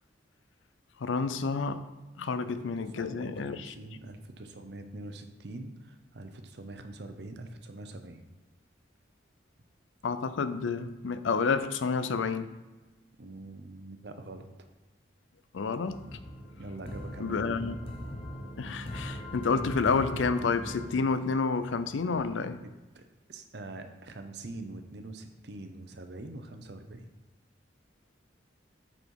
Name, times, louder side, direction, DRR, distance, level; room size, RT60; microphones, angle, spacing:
voice 1, 1.0-1.9 2.2-3.7 10.0-12.6 15.5-16.2 17.2-17.8 18.6-22.6, left 4 dB, 85° left, 0.5 m, -29 dB
voice 2, 2.9-8.2 13.2-14.5 16.6-17.4 22.9-27.1, right 2 dB, 60° right, 0.7 m, -44 dB
sound 1, 15.9-22.2, left 1 dB, 30° left, 0.9 m, -40 dB
8.1 x 4.2 x 4.6 m
head